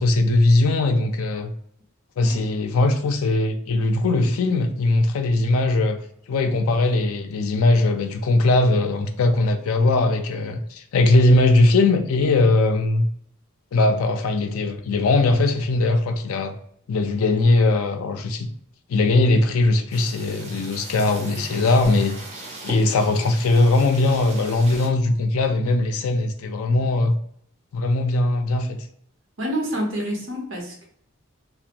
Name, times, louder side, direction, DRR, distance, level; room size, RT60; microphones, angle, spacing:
voice 1, 0.0-1.5 2.2-6.0 6.3-13.1 13.7-16.5 16.9-18.5 18.9-22.2 22.6-27.1 27.7-28.8, left 2 dB, 85° left, 0.4 m, -20 dB
sound 1, 19.9-24.9, right 2 dB, 30° right, 0.6 m, -39 dB
voice 2, 29.4-30.8, equal, 70° right, 0.8 m, -28 dB
2.5 x 2.2 x 2.8 m
head